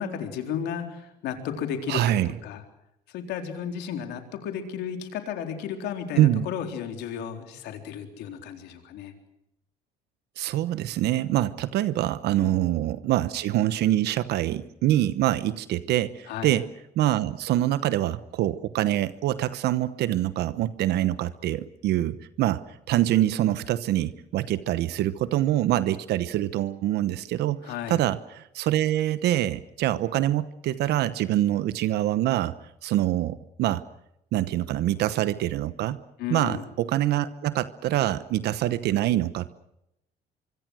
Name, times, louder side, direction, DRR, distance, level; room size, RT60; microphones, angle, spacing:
voice 1, 0.0-2.6 3.1-9.1 12.4-12.6 16.3-16.6 27.6-28.0 36.2-36.7, left 8 dB, 80° left, 5 dB, 3.9 m, -33 dB
voice 2, 1.9-2.3 6.2-6.4 10.4-16.7 17.0-32.5 32.8-33.8 34.3-36.0 36.3-39.6, right 13 dB, 75° right, 15 dB, 1.0 m, -25 dB
24.5 x 24.5 x 6.3 m, 0.82 s
cardioid pair, 110°, 17 cm